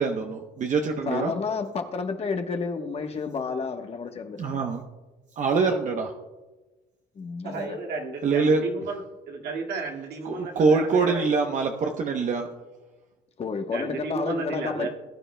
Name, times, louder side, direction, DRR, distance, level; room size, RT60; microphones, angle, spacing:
voice 1, 0.0-1.3 4.4-4.8 5.4-6.1 8.2-8.6 10.2-12.5, right 4 dB, 45° right, 3 dB, 0.9 m, -24 dB
voice 2, 1.1-4.6 7.1-7.8 13.4-14.9, left 5 dB, 35° left, 5 dB, 1.2 m, -30 dB
voice 3, 7.4-11.3 13.7-14.9, right 4 dB, 75° right, 0 dB, 2.1 m, -33 dB
20.5 x 9.8 x 2.2 m, 1.2 s
cardioid pair, 110°, 17 cm